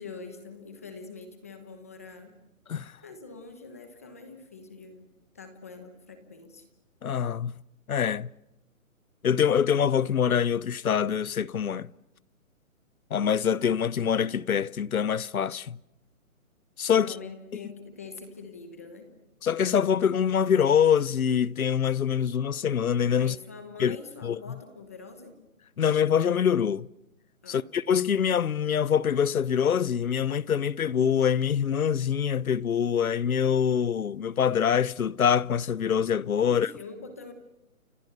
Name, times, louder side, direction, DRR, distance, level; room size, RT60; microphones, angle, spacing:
voice 1, 0.0-2.3 3.0-5.1 5.3-6.6 17.0-19.1 23.2-25.4 27.4-27.7 36.4-37.3, left 4 dB, 10° left, 1.0 m, -44 dB
voice 2, 7.0-7.6 7.9-8.3 9.2-11.9 13.1-15.8 16.8-17.2 17.5-17.6 19.4-23.4 23.8-24.0 24.2-24.4 25.8-26.9 27.5-36.7, left 8 dB, 80° left, 0.9 m, -25 dB
29.5 x 28.5 x 6.7 m
hypercardioid pair, 175°, 42 cm